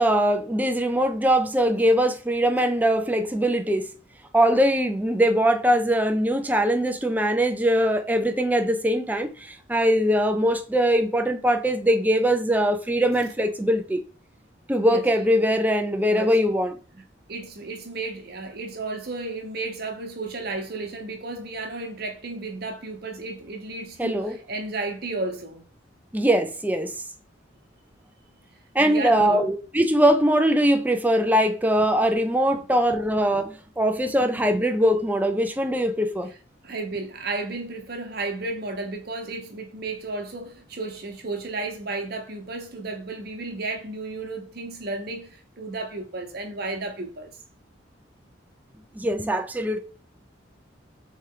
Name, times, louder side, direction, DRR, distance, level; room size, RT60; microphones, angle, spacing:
voice 1, 0.0-3.9 4.3-14.0 14.7-16.7 24.0-24.4 26.1-26.9 28.7-36.3 48.9-49.8, equal, 10° right, 0.5 m, -22 dB
voice 2, 17.3-25.7 28.8-29.4 32.5-32.7 36.6-47.3, right 3 dB, 55° right, 1.0 m, -33 dB
4.3 x 3.2 x 3.8 m
head